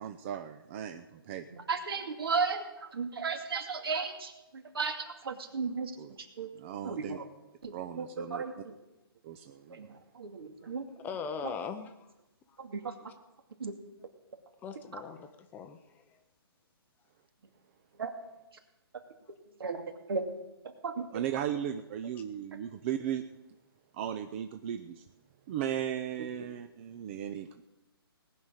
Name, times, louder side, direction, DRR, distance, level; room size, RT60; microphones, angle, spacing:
voice 1, 0.0-1.5 6.0-6.2 6.5-7.2 7.7-8.6 9.2-10.0 21.1-23.2 23.9-25.0 25.5-27.6, right 10 dB, 30° right, 7 dB, 0.6 m, -37 dB
voice 2, 1.5-5.9 6.2-6.5 6.8-7.3 7.6-8.8 9.7-9.9 10.1-10.9 11.4-11.5 12.6-12.9 13.6-13.8 14.9-15.0 18.0-18.1 19.6-19.8 20.1-20.3 20.8-21.2, right 5 dB, 65° right, 5 dB, 2.4 m, -35 dB
voice 3, 11.0-12.1 12.5-12.6 14.6-16.2, left 6 dB, 15° left, 8 dB, 0.7 m, -40 dB
18.5 x 6.4 x 9.1 m, 0.99 s
hypercardioid pair, 150°, 13 cm